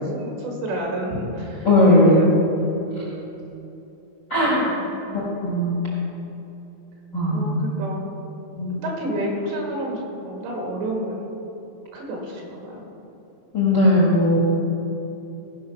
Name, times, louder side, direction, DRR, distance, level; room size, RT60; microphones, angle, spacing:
voice 1, 0.1-2.5 4.3-5.3 7.3-8.1 8.8-11.4 11.9-12.8, equal, 85° right, -1 dB, 4.3 m, -30 dB
voice 2, 1.6-2.2 4.3-4.7 5.1-5.8 7.1-7.6 8.6-8.7 13.5-14.4, left 1 dB, 80° left, -5 dB, 0.9 m, -18 dB
16.5 x 5.6 x 5.9 m, 3.0 s
omnidirectional pair, 4.9 m